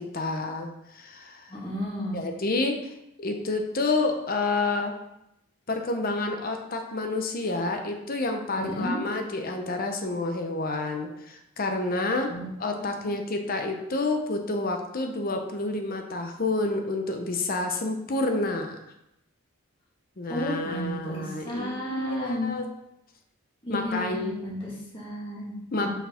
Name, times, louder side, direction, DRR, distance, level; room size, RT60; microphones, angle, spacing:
voice 1, 0.0-1.5 2.1-2.8 3.2-4.9 5.7-12.3 12.6-18.8 20.2-22.7 23.7-24.3 25.7-25.9, left 2 dB, 45° left, 4 dB, 0.7 m, -29 dB
voice 2, 1.5-2.2 8.6-9.0 12.3-12.5 12.7-13.1 20.3-22.6 23.6-25.5 25.8-25.9, left 1 dB, 25° left, -6 dB, 1.9 m, -33 dB
5.7 x 4.6 x 4.3 m, 0.83 s
head